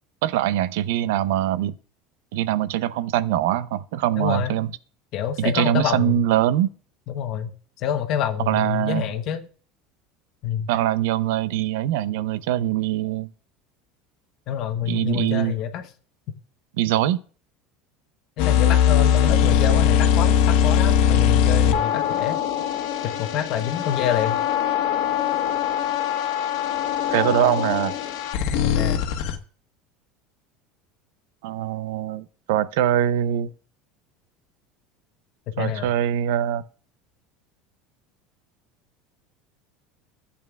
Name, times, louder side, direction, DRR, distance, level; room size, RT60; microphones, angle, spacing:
voice 1, 0.2-1.7 2.3-4.7 5.4-6.7 8.5-9.1 10.7-13.3 14.9-15.5 16.8-17.2 27.1-27.9 31.4-33.5 35.6-36.6, right 12 dB, 75° right, 0.6 m, -23 dB
voice 2, 4.2-4.5 5.1-6.2 7.1-7.5 7.8-9.4 10.4-10.7 14.5-15.9 18.4-22.4 23.0-24.4 28.6-29.0 35.6-35.9, left 9 dB, 40° left, 0.9 m, -27 dB
sound 1, 18.4-29.4, left 9 dB, 60° left, 1.3 m, -21 dB
14.0 x 8.5 x 2.4 m
cardioid pair, 175°, 0 cm